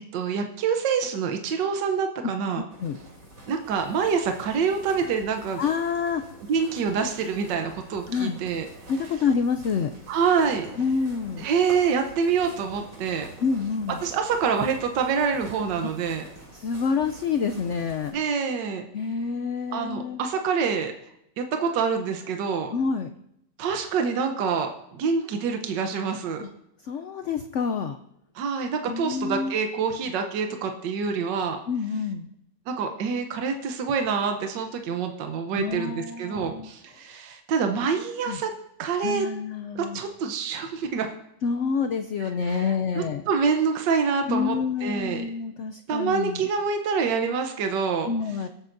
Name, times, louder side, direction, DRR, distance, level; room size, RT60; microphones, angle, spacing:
voice 1, 0.1-2.6 3.5-5.6 6.5-8.7 10.1-10.7 11.4-13.3 14.0-16.2 18.1-18.8 19.7-20.9 21.4-22.7 23.6-26.4 28.3-31.6 32.7-38.5 38.8-39.3 39.7-41.1 42.5-42.7 43.0-45.2 45.9-48.1, right 6 dB, 80° right, 5 dB, 1.5 m, -26 dB
sound 1, 2.7-18.1, right 1 dB, 30° right, 3.1 m, -46 dB
voice 2, 5.6-6.2 8.1-8.4 8.9-9.9 10.8-11.5 13.4-14.0 15.8-15.9 16.5-18.2 18.9-20.2 22.7-23.1 26.4-26.5 26.8-28.0 28.9-29.5 31.7-32.3 35.5-36.7 38.3-38.4 39.0-40.0 41.4-43.2 44.3-46.4 48.1-48.5, left 5 dB, 85° left, 8 dB, 0.6 m, -27 dB
25.0 x 8.9 x 2.6 m, 0.79 s
omnidirectional pair, 1.9 m